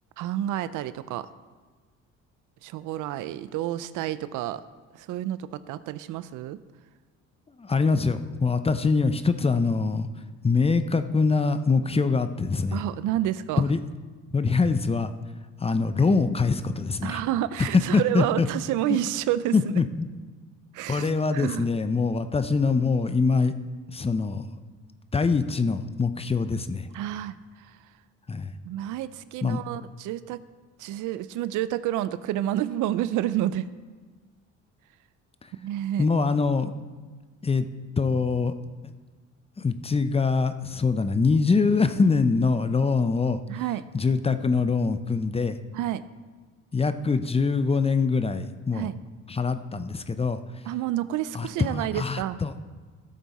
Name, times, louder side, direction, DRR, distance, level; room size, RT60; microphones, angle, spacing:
voice 1, 0.2-1.3 2.6-4.6 4.9-6.6 12.7-13.6 17.0-19.6 20.7-21.6 26.9-27.4 28.7-30.4 30.8-33.7 35.6-36.1 43.5-43.8 45.7-46.0 48.7-48.9 50.7-52.4, right 13 dB, 90° right, 15 dB, 0.5 m, -29 dB
voice 2, 7.6-10.1 10.4-12.8 13.6-13.8 14.3-15.1 15.6-17.2 17.9-18.5 18.9-19.0 19.5-20.1 20.9-23.5 23.9-24.4 25.1-26.9 28.3-28.5 29.4-29.6 36.0-36.7 37.4-37.7 38.0-38.5 38.8-38.9 39.6-43.4 43.9-45.6 46.7-48.9 49.3-50.4 51.3-52.6, left 4 dB, 20° left, 10 dB, 0.6 m, -24 dB
13.5 x 7.5 x 4.2 m, 1.4 s
cardioid pair, 90°, 30 cm